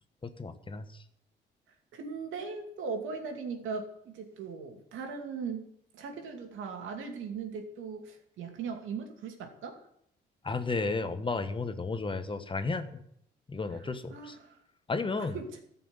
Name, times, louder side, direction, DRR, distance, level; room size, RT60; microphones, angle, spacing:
voice 1, 0.2-0.9 10.4-13.0 13.5-14.4 14.9-15.4, left 3 dB, 25° left, 9 dB, 1.3 m, -33 dB
voice 2, 1.9-5.6 5.9-9.8 13.7-14.6 15.2-15.5, right 5 dB, 80° right, 3 dB, 2.6 m, -39 dB
14.0 x 5.9 x 9.7 m, 0.74 s
cardioid pair, 90°, 20 cm